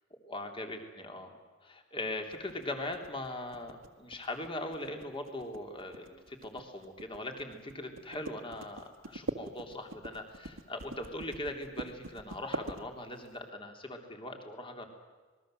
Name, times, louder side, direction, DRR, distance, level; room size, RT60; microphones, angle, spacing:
voice 1, 0.2-14.9, left 1 dB, 25° left, 4 dB, 3.2 m, -40 dB
sound 1, 2.3-13.3, right 2 dB, 90° right, 1.9 m, -43 dB
26.5 x 21.0 x 7.7 m, 1.4 s
head